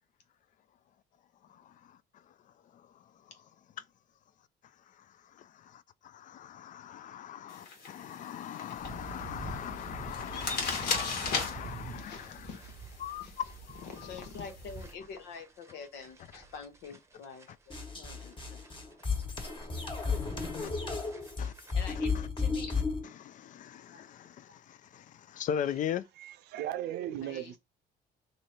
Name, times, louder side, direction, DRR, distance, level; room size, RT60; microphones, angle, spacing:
voice 1, 5.4-12.3 13.0-13.8 20.5-20.7 21.4-21.5 23.2-26.0, left 9 dB, 50° left, 0.4 m, -39 dB
sound 1, 7.5-14.9, left 4 dB, 70° left, 1.4 m, -39 dB
sound 2, 8.7-22.1, right 4 dB, 15° right, 0.8 m, -48 dB
voice 2, 11.4-12.7 13.2-13.3 13.7-18.6 21.7-22.8 23.9-24.6 27.2-27.6, left 5 dB, 90° left, 1.0 m, -46 dB
sound 3, 17.7-23.0, left 4 dB, 30° left, 1.3 m, -33 dB
voice 3, 26.2-27.6, right 12 dB, 80° right, 0.6 m, -37 dB
3.2 x 2.7 x 4.1 m
cardioid pair, 110°, 17 cm